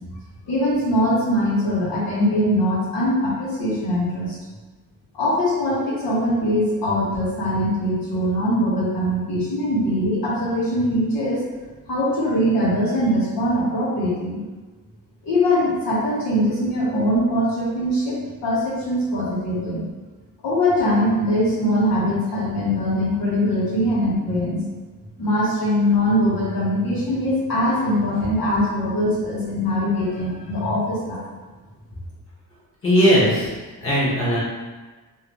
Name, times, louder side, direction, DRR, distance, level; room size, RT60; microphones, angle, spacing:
voice 1, 0.5-4.4 5.1-11.5 11.9-14.4 15.2-18.2 18.4-19.9 20.4-24.6 25.2-31.3, equal, 90° left, -7 dB, 1.4 m, -22 dB
voice 2, 32.8-33.5 33.8-34.4, equal, 40° left, -7 dB, 1.3 m, -18 dB
3.1 x 2.9 x 3.0 m, 1.3 s
wide cardioid pair, 165°, 33 cm